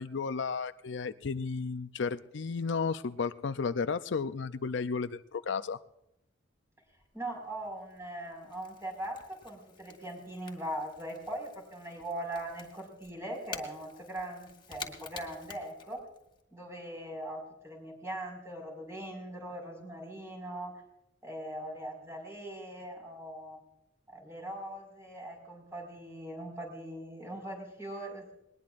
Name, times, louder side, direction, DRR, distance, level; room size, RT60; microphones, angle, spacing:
voice 1, 0.0-5.8, left 5 dB, 70° left, 12 dB, 0.5 m, -33 dB
Crackle / Crack, 6.9-16.4, left 5 dB, 25° left, 2.1 m, -50 dB
voice 2, 7.1-16.0 16.5-20.7 21.2-23.6 24.1-28.3, right 1 dB, 15° right, 1 dB, 5.3 m, -41 dB
20.5 x 20.0 x 2.5 m, 0.83 s
head